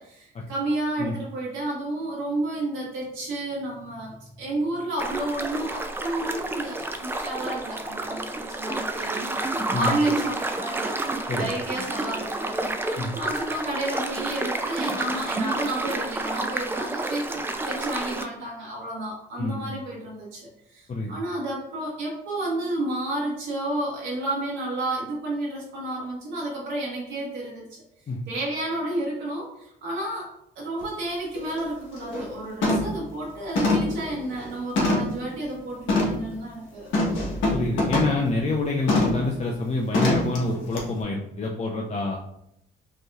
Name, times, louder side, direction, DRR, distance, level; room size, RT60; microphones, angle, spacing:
voice 1, 0.0-12.6 12.9-27.8 28.3-30.3 30.5-37.2, right 1 dB, 75° right, -5 dB, 1.6 m, -31 dB
sound 1, 5.0-18.3, right 2 dB, 10° right, 0.4 m, -30 dB
voice 2, 19.4-19.7 20.9-21.1 28.1-28.2 37.5-42.2, left 2 dB, 35° left, -1 dB, 0.6 m, -27 dB
sound 2, 30.8-30.9 31.3-31.6 32.0-32.3 32.6-33.0 33.6-35.2 35.9-36.2 36.9-38.2 38.9-39.3 39.9-40.4 40.8-40.9, left 2 dB, 80° left, 1.2 m, -24 dB
5.3 x 3.0 x 2.4 m, 0.77 s
cardioid pair, 90°, 20 cm